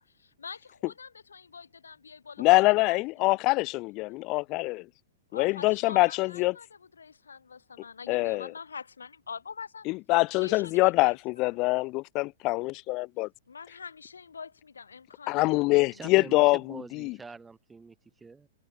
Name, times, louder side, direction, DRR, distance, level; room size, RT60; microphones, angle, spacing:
voice 1, 0.0-2.5 2.8-3.0 5.3-9.9 10.3-11.2 11.6-11.7 13.5-16.5, left 5 dB, 85° left, 3.5 m, -45 dB
voice 2, 2.4-4.9 5.3-6.6 8.1-8.5 9.9-13.3 15.3-16.6 16.9-17.2, left 23 dB, 40° left, 0.5 m, -24 dB
voice 3, 15.9-18.5, right 4 dB, 10° right, 7.4 m, -45 dB
hypercardioid pair, 115°, 0 cm